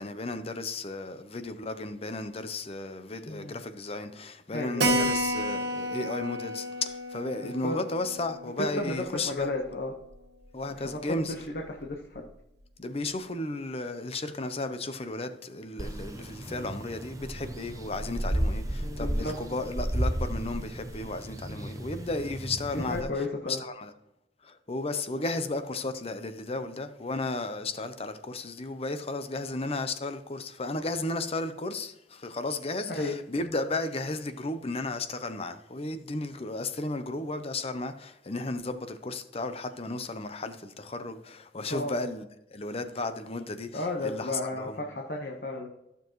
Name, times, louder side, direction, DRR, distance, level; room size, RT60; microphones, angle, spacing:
voice 1, 0.0-9.5 10.5-11.3 12.8-23.9 24.4-44.8, left 2 dB, 35° left, 0.7 m, -34 dB
voice 2, 3.3-3.6 4.5-5.1 7.4-7.7 8.6-9.9 10.9-11.0 11.7-12.2 16.5-16.7 18.8-19.3 21.4-21.7 22.7-23.6 32.9-33.2 41.7-41.9 43.7-45.7, left 2 dB, 60° left, 1.2 m, -33 dB
Keyboard (musical), 4.8-9.9 10.1-10.2 10.5-10.6 10.9-11.0 11.5-11.9, equal, 65° right, 1.4 m, -32 dB
sound 1, 15.8-23.0, right 1 dB, 20° right, 0.7 m, -33 dB
14.5 x 6.9 x 3.1 m
head